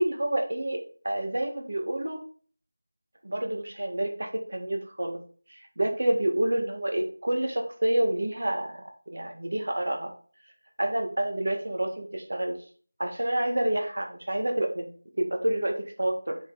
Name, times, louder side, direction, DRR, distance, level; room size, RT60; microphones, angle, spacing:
voice 1, 0.0-2.2 3.2-5.2 5.5-8.8 9.1-10.1 10.8-12.6 13.0-14.9 15.2-16.4, right 1 dB, 65° right, 3 dB, 1.8 m, -28 dB
7.1 x 4.2 x 4.1 m, 0.43 s
figure-of-eight pair, 170°, 0 cm